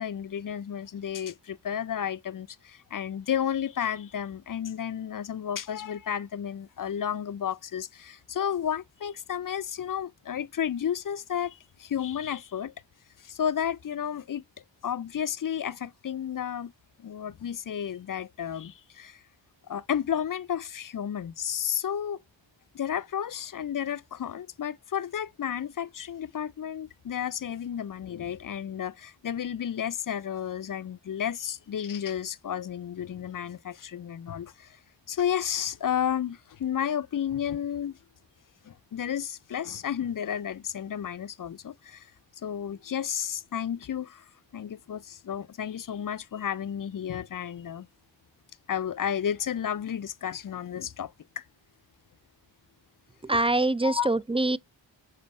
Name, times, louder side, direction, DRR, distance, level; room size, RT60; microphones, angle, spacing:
voice 1, 0.0-12.7 13.2-14.4 14.8-16.7 17.0-19.2 19.7-22.2 22.7-34.8 35.1-38.0 38.6-42.1 42.4-44.2 44.5-47.9 48.7-51.4 53.8-54.2, left 9 dB, 45° left, 0.5 m, -32 dB
voice 2, 53.2-54.6, right 2 dB, 15° right, 0.3 m, -24 dB
7.1 x 2.8 x 5.2 m
cardioid pair, 40°, 45 cm